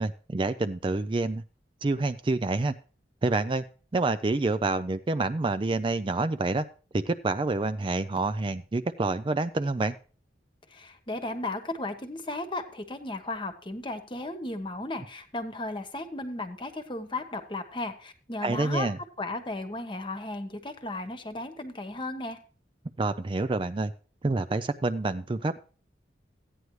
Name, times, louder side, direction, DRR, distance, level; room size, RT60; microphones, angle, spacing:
voice 1, 0.0-1.4 1.8-2.7 3.2-3.6 3.9-6.6 7.1-9.9 18.4-19.0 23.0-23.9 24.2-25.6, right 3 dB, 25° right, 12 dB, 0.4 m, -27 dB
voice 2, 10.7-18.9 19.2-22.4, left 2 dB, 25° left, 8 dB, 1.2 m, -35 dB
14.5 x 9.4 x 3.2 m, 0.38 s
head